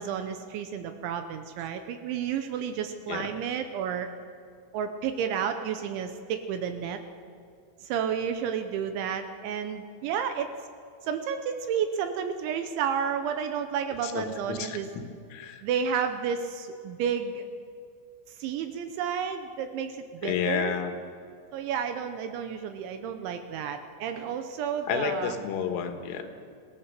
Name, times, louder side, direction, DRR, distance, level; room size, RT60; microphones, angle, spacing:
voice 1, 0.0-4.1 4.7-7.0 7.8-10.5 11.1-14.9 15.6-17.4 18.3-20.7 21.5-25.4, right 7 dB, 75° right, 7 dB, 3.0 m, -31 dB
voice 2, 14.0-15.0 15.3-15.6 20.2-21.0 24.9-26.3, left 7 dB, 80° left, 6 dB, 3.9 m, -31 dB
26.0 x 17.0 x 6.7 m, 2.4 s
omnidirectional pair, 6.0 m